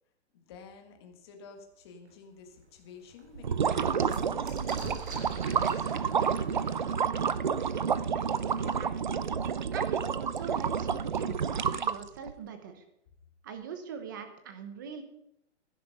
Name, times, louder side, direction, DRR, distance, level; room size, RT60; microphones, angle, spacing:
voice 1, 0.3-6.8, left 6 dB, 20° left, 4 dB, 1.6 m, -51 dB
sound 1, 2.1-2.2 2.6-2.7 3.0-8.5 9.5-9.6 9.8-10.5, right 4 dB, 60° right, 3.7 m, -46 dB
sound 2, 3.4-12.3, right 7 dB, 40° right, 0.5 m, -29 dB
voice 2, 8.2-9.1 9.7-12.9 13.4-15.0, right 6 dB, 15° right, 8 dB, 1.0 m, -43 dB
15.5 x 11.0 x 5.5 m, 0.78 s
hypercardioid pair, 180°, 36 cm